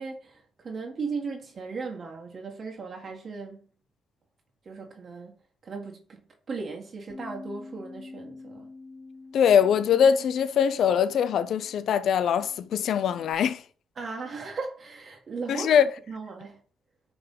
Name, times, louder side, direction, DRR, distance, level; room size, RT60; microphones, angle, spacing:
voice 1, 0.0-3.6 4.6-5.3 5.6-8.7 14.0-15.7 16.1-16.6, right 4 dB, 50° right, 1.5 m, -37 dB
Bass guitar, 7.1-13.3, left 3 dB, 20° left, 2.9 m, -47 dB
voice 2, 9.3-13.6 15.5-15.9, left 8 dB, 70° left, 0.5 m, -22 dB
9.2 x 3.5 x 3.8 m
cardioid pair, 75°, 0 cm